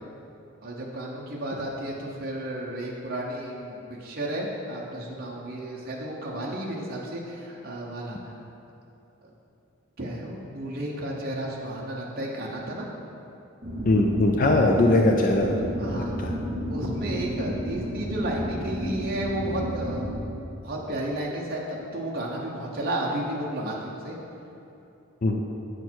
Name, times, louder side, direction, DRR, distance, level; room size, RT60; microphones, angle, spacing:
voice 1, 0.6-8.3 10.0-12.9 15.8-16.2 16.7-20.4 20.6-24.2, right 1 dB, 45° right, -3 dB, 0.8 m, -32 dB
sound 1, 13.6-20.2, equal, 60° right, 1.8 m, -32 dB
voice 2, 13.9-15.7 16.0-16.3 25.2-25.4, left 2 dB, 40° left, 1 dB, 0.4 m, -21 dB
8.2 x 6.3 x 4.5 m, 2.8 s
head